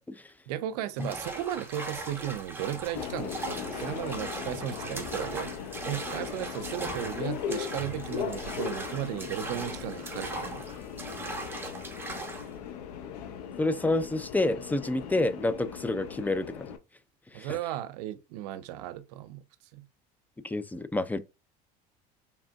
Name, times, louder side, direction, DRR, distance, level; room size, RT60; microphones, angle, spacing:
voice 1, 0.5-5.5 5.8-10.6 17.3-19.4 19.7-19.9, right 12 dB, 80° right, 0.6 m, -35 dB
sound 1, 1.0-12.5, right 2 dB, 10° right, 1.2 m, -39 dB
Subway metro underground, 2.9-16.8, left 8 dB, 85° left, 0.7 m, -38 dB
voice 2, 13.6-16.7 17.3-17.5 20.4-21.2, left 2 dB, 10° left, 0.5 m, -28 dB
4.9 x 3.4 x 2.3 m
supercardioid pair, 90°, 20 cm